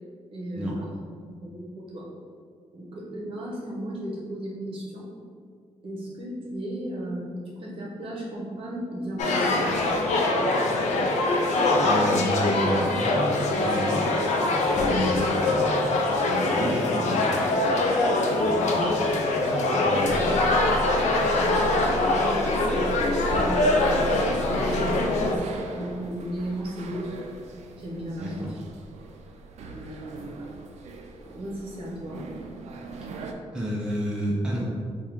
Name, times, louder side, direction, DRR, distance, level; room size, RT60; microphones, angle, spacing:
voice 1, 0.3-0.8 1.3-2.0 2.7-5.1 5.8-9.7 21.3-21.6 22.2-24.2 24.6-27.2 27.8-28.3 29.7-30.4 31.2-32.2, right 1 dB, 50° right, -4 dB, 0.9 m, -35 dB
sound 1, 9.2-25.4, left 2 dB, 80° left, 0.5 m, -23 dB
voice 2, 11.8-14.1 14.7-17.3 18.4-19.4 19.7-20.6 28.2-28.6 33.5-34.6, equal, 5° right, -5 dB, 0.4 m, -31 dB
sound 2, 20.1-33.3, right 2 dB, 70° right, 0.4 m, -36 dB
3.5 x 2.3 x 4.4 m, 2.1 s
wide cardioid pair, 155°, 12 cm